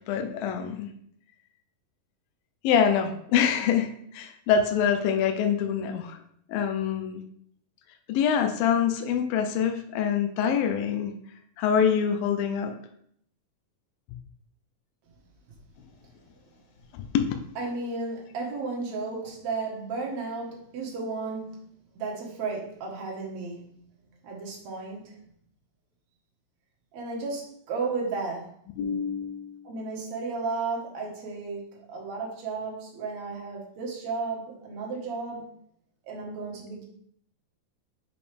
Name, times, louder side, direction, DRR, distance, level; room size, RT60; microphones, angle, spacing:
voice 1, 0.1-0.9 2.6-6.2 6.5-7.2 8.1-11.1 11.6-12.8 16.9-17.3 28.8-29.7, left 7 dB, 80° left, 5 dB, 2.3 m, -25 dB
voice 2, 17.6-21.7 22.0-23.8 24.2-25.2 26.9-28.6 29.6-35.5 36.0-36.8, right 4 dB, 55° right, -2 dB, 2.3 m, -34 dB
6.9 x 4.9 x 3.4 m, 0.66 s
omnidirectional pair, 4.3 m